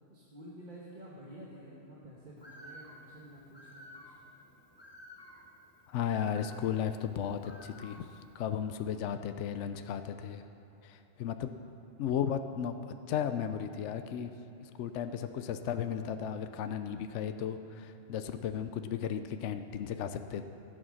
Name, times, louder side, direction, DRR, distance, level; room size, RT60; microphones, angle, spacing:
voice 1, 0.1-4.1 18.2-18.5, right 1 dB, 40° right, -5 dB, 1.5 m, -50 dB
Bird, 2.4-8.4, equal, 20° left, 1.3 m, -53 dB
voice 2, 5.9-8.1 8.3-10.4 10.8-11.5 12.0-14.3 14.6-20.4, left 8 dB, 75° left, 9 dB, 0.9 m, -35 dB
15.0 x 8.8 x 6.4 m, 2.9 s
omnidirectional pair, 1.3 m